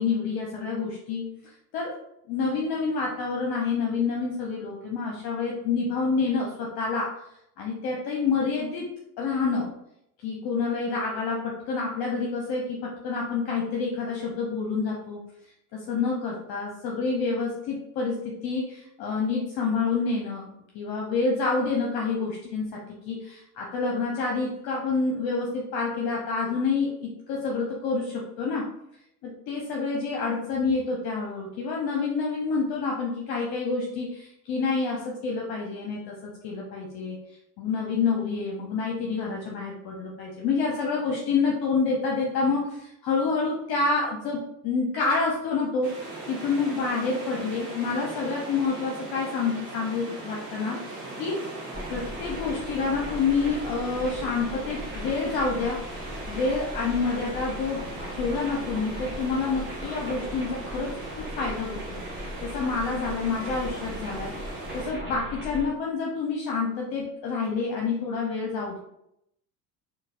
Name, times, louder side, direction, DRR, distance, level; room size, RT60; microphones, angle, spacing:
voice 1, 0.0-1.9 2.3-7.1 7.6-8.9 9.2-9.7 10.2-15.2 15.7-20.5 20.7-22.8 23.1-28.6 29.2-37.2 37.6-51.4 51.9-55.8 56.3-57.8 58.1-62.0 62.4-68.8, left 4 dB, 50° left, -1 dB, 0.7 m, -28 dB
sound 1, 45.8-64.9, right 2 dB, 55° right, 1.2 m, -39 dB
sound 2, 51.7-65.7, left 1 dB, 20° right, 1.4 m, -38 dB
4.0 x 2.3 x 2.4 m, 0.78 s
figure-of-eight pair, 60°, 50 cm